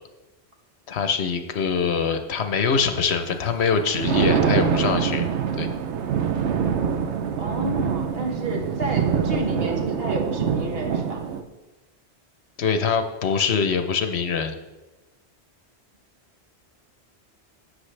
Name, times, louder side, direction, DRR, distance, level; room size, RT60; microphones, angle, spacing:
voice 1, 0.9-5.2 5.6-5.7 12.6-14.6, left 6 dB, 75° left, 7 dB, 1.1 m, -23 dB
Thunder, 3.7-11.4, right 7 dB, 90° right, 1.0 m, -24 dB
voice 2, 7.4-11.2, right 1 dB, 60° right, 1 dB, 1.6 m, -30 dB
12.5 x 8.0 x 3.3 m, 1.1 s
omnidirectional pair, 1.1 m